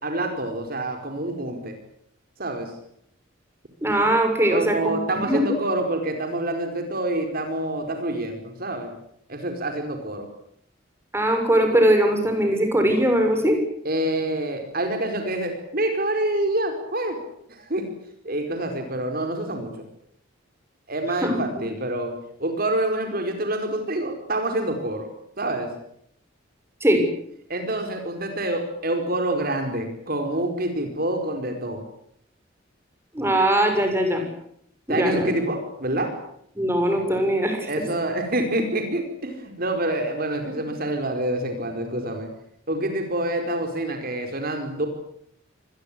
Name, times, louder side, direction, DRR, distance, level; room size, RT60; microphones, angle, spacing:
voice 1, 0.0-1.7 2.4-2.7 4.5-8.9 9.3-10.3 13.8-17.2 17.5-17.9 18.2-19.7 20.9-25.1 25.4-25.7 27.5-31.8 34.9-36.1 37.7-42.3 42.7-44.9, right 1 dB, 50° right, 5 dB, 4.8 m, -27 dB
voice 2, 3.8-5.4 11.1-13.6 21.2-21.6 26.8-27.0 33.1-34.2 34.9-35.3 36.6-37.7, right 1 dB, 15° right, 4 dB, 7.0 m, -21 dB
26.5 x 21.0 x 8.6 m, 0.71 s
head